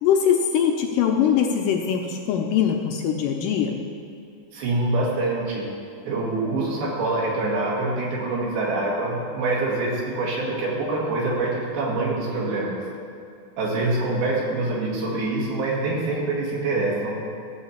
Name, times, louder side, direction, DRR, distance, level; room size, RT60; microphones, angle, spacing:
voice 1, 0.0-3.8, left 8 dB, 80° left, 2 dB, 2.0 m, -22 dB
voice 2, 4.5-5.7 6.0-12.8 13.6-17.1, right 2 dB, 85° right, -4 dB, 4.0 m, -25 dB
14.0 x 7.9 x 4.3 m, 2.6 s
omnidirectional pair, 4.2 m